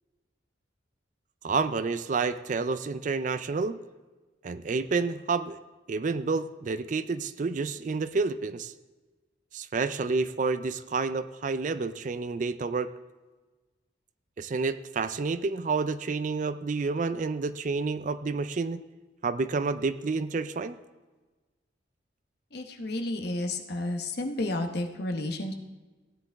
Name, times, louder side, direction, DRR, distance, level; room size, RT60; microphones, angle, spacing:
voice 1, 1.4-3.8 4.4-5.6 5.9-8.7 9.5-12.9 14.4-18.8 19.2-20.8, right 4 dB, 40° right, 14 dB, 0.4 m, -29 dB
voice 2, 22.5-25.5, left 2 dB, 55° left, 4 dB, 1.0 m, -31 dB
15.5 x 9.9 x 3.5 m, 1.2 s
head